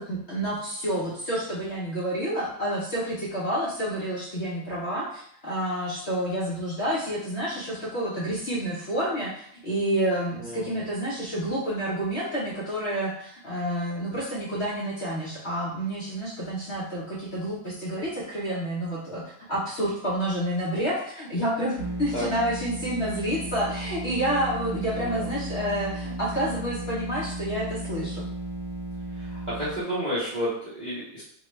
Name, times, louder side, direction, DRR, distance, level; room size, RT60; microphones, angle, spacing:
voice 1, 0.0-19.2 19.5-28.3, right 1 dB, 50° left, -8 dB, 0.8 m, -29 dB
voice 2, 10.4-10.8 22.1-22.3 24.9-25.3 29.1-31.2, equal, 40° right, -9 dB, 0.6 m, -31 dB
sound 1, 21.8-29.8, right 1 dB, 15° right, 1.0 m, -35 dB
3.7 x 2.3 x 3.1 m, 0.65 s
omnidirectional pair, 2.0 m